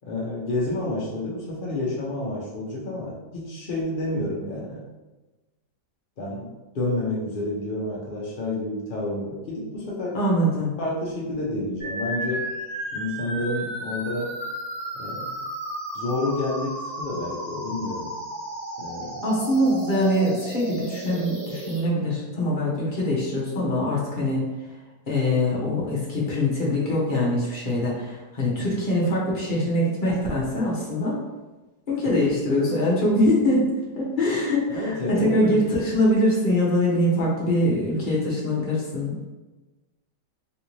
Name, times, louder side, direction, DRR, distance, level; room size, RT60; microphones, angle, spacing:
voice 1, 0.0-4.8 6.2-6.5 6.7-10.2 10.8-12.5 12.9-14.4 14.9-15.4 15.9-18.2 18.8-19.3 28.6-28.9 34.7-35.7, left 2 dB, 80° left, -5 dB, 0.4 m, -29 dB
voice 2, 10.1-10.7 19.2-24.4 25.1-31.2 31.9-33.6 33.9-39.2, left 1 dB, 40° left, -6 dB, 0.8 m, -23 dB
sound 1, 11.8-21.8, right 1 dB, 35° right, 1.2 m, -34 dB
3.3 x 2.7 x 3.0 m, 1.1 s
omnidirectional pair, 1.9 m